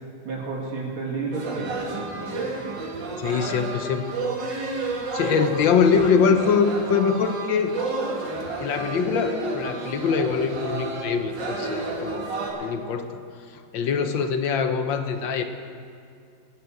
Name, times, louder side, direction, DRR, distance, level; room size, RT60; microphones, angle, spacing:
voice 1, 0.2-2.5 5.7-5.9, right 3 dB, 85° right, -3 dB, 3.2 m, -32 dB
sound 1, 1.3-12.5, right 2 dB, 65° right, 2.3 m, -31 dB
voice 2, 3.2-4.2 5.1-7.7 8.6-12.3 12.6-13.1 13.5-15.4, left 6 dB, 70° left, 7 dB, 1.5 m, -23 dB
16.5 x 6.1 x 8.9 m, 2.4 s
omnidirectional pair, 2.2 m